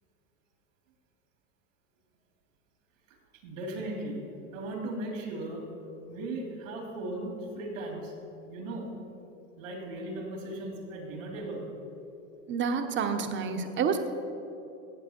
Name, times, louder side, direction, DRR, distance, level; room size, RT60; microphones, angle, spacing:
voice 1, 3.4-4.2 4.5-5.6 6.1-8.1 8.5-8.9 9.6-11.6, right 1 dB, 85° right, 1 dB, 3.1 m, -37 dB
voice 2, 12.5-14.1, right 6 dB, 30° right, 6 dB, 1.0 m, -29 dB
16.5 x 7.5 x 4.5 m, 2.9 s
supercardioid pair, 125°, 39 cm